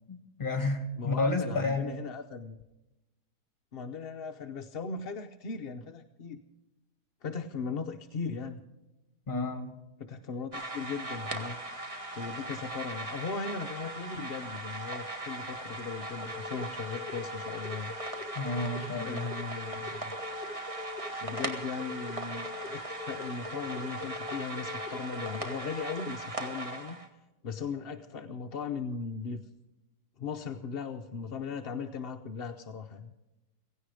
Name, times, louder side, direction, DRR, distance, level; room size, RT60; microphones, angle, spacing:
voice 1, 0.1-2.0 9.3-9.8 18.4-19.3, left 2 dB, 30° left, 7 dB, 2.2 m, -31 dB
voice 2, 1.0-2.6 3.7-6.4 7.2-8.6 10.0-11.6 12.1-17.9 19.0-20.1 21.2-27.0 27.4-29.4 30.2-33.1, left 5 dB, 50° left, 6 dB, 0.8 m, -38 dB
sound 1, 10.5-27.1, right 2 dB, 20° right, 1.8 m, -39 dB
sound 2, 16.2-26.0, left 6 dB, 35° right, 3.7 m, -43 dB
16.5 x 16.5 x 4.9 m, 0.98 s
omnidirectional pair, 1.7 m